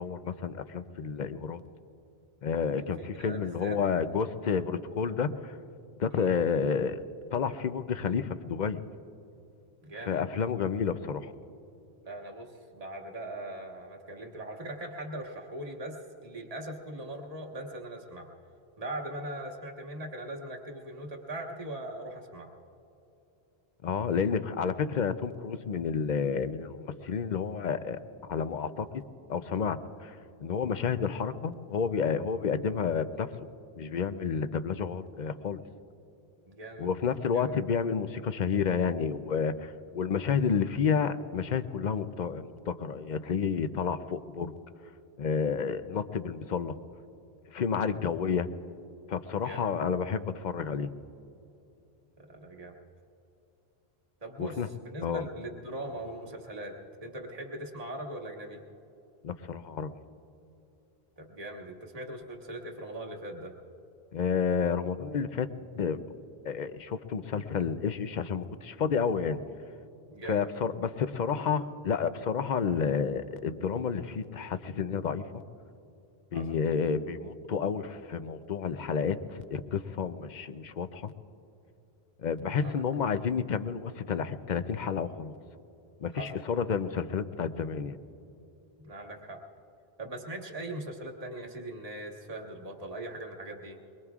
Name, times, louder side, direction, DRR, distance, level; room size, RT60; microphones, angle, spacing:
voice 1, 0.0-1.6 2.4-5.6 6.0-7.0 7.3-8.8 10.1-11.3 23.8-28.0 28.3-29.0 29.3-33.3 33.8-35.6 36.8-44.5 45.2-46.8 47.5-48.5 49.1-50.9 54.4-54.7 55.0-55.3 59.2-59.9 64.1-65.5 65.8-66.0 66.4-69.4 70.2-75.2 76.3-81.1 82.2-85.4 86.0-88.0, left 6 dB, 55° left, 11 dB, 0.7 m, -30 dB
voice 2, 2.7-3.8 6.1-6.3 9.8-10.2 12.0-18.3 18.8-22.5 36.5-36.9 37.3-37.5 49.4-49.7 52.3-52.8 54.2-58.6 61.2-63.6 70.1-70.4 76.3-76.5 82.6-82.8 86.1-86.4 88.8-89.4 90.0-93.8, right 1 dB, 35° right, 1 dB, 1.5 m, -40 dB
23.0 x 23.0 x 2.4 m, 2.8 s
omnidirectional pair, 1.1 m